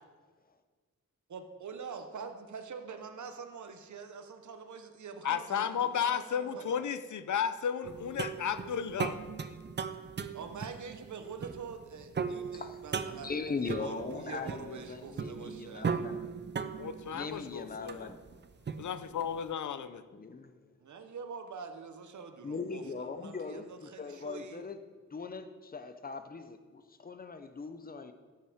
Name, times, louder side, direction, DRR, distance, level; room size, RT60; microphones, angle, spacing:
voice 1, 1.3-6.9 10.3-13.3 13.6-15.9 20.8-24.6, right 5 dB, 75° right, 7 dB, 0.9 m, -45 dB
voice 2, 5.2-9.2 16.8-18.1 18.8-20.0, left 8 dB, 85° left, 12 dB, 0.6 m, -33 dB
sound 1, 7.8-19.4, right 5 dB, 40° right, 0.4 m, -38 dB
voice 3, 12.5-16.3 17.1-18.2 20.1-20.6 22.4-24.8 25.1-28.1, left 4 dB, 30° left, 9 dB, 0.6 m, -40 dB
13.5 x 5.7 x 5.0 m, 1.5 s
wide cardioid pair, 130°, 29 cm